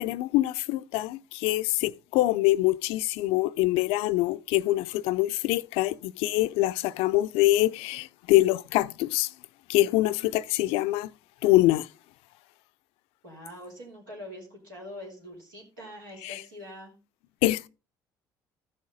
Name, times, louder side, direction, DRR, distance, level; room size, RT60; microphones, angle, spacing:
voice 1, 0.0-9.3 9.7-11.1 11.4-11.9 16.2-16.4 17.4-17.7, left 17 dB, 70° left, 0.4 m, -24 dB
voice 2, 13.2-16.9, left 1 dB, 90° right, 3.5 m, -44 dB
14.0 x 6.5 x 3.9 m
hypercardioid pair, 60°, 10 cm